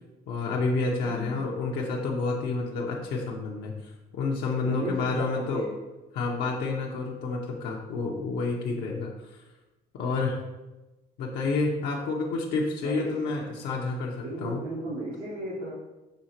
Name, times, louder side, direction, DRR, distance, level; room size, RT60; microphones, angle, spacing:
voice 1, 0.3-5.7 6.1-9.4 9.9-10.4 11.2-14.6, left 3 dB, 75° left, -1 dB, 0.6 m, -29 dB
voice 2, 1.0-1.4 4.6-5.7 12.8-13.1 14.2-15.7, right 1 dB, 85° right, -7 dB, 1.0 m, -35 dB
6.1 x 2.8 x 2.8 m, 1.1 s
cardioid pair, 110°, 17 cm